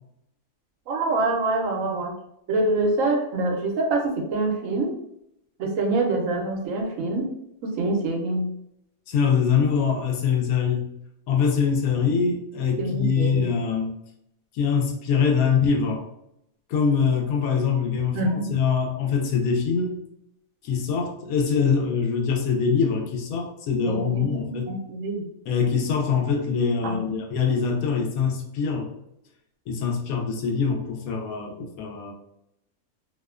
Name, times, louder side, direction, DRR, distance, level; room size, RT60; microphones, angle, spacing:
voice 1, 0.9-2.1 2.5-4.9 5.6-7.3 7.6-8.5 12.8-13.5 18.1-18.6 23.8-25.2 26.8-27.1, right 2 dB, 75° right, 2 dB, 1.0 m, -25 dB
voice 2, 9.1-10.9 11.3-14.0 14.5-16.0 16.7-20.0 20.6-24.7 25.5-28.9 29.7-32.1, left 6 dB, 90° left, 2 dB, 1.0 m, -23 dB
2.8 x 2.1 x 2.3 m, 0.78 s
omnidirectional pair, 1.4 m